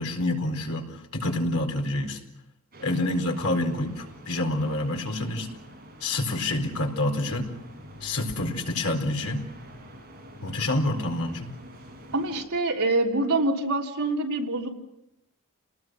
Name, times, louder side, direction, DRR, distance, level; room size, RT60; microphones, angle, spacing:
voice 1, 0.0-2.2 2.8-5.5 6.0-7.5 8.0-9.5 10.4-11.5, left 1 dB, 90° left, 3 dB, 4.2 m, -27 dB
sound 1, 2.7-12.4, equal, 40° right, 7.3 m, -47 dB
voice 2, 12.1-14.7, right 2 dB, 80° right, 0 dB, 3.4 m, -25 dB
29.0 x 19.5 x 6.3 m, 0.90 s
head